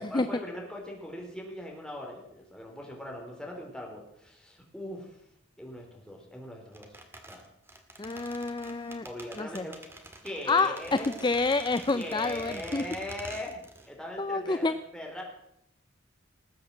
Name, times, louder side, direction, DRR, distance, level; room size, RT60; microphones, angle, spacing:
voice 1, 0.0-5.2 5.6-7.0 7.3-7.5 9.0-9.7 10.2-11.1 11.9-15.2, left 1 dB, 5° left, -1 dB, 4.1 m, -40 dB
sound 1, 6.7-13.9 14.2-14.3, right 1 dB, 15° right, 1.9 m, -47 dB
voice 2, 8.0-9.1 9.4-9.7 10.5-12.8 14.2-14.7, left 3 dB, 25° left, 12 dB, 0.5 m, -28 dB
19.5 x 8.6 x 7.5 m, 0.78 s
head